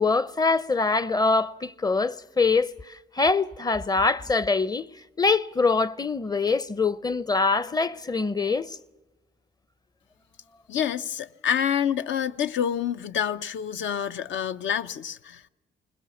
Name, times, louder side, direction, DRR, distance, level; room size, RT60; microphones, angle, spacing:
voice 1, 0.0-4.9 5.2-8.8, left 4 dB, 20° left, 0.6 m, -24 dB
voice 2, 10.7-15.5, left 8 dB, 70° left, 0.7 m, -27 dB
21.0 x 20.5 x 7.1 m
cardioid pair, 90°, 20 cm